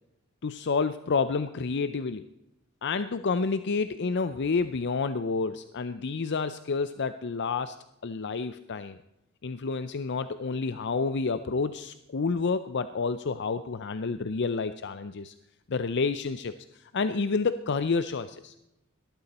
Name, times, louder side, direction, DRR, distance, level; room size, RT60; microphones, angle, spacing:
voice 1, 0.4-2.3 2.8-9.0 9.4-15.3 15.7-18.5, left 4 dB, 55° left, 12 dB, 0.6 m, -29 dB
18.5 x 13.0 x 4.2 m, 0.91 s
head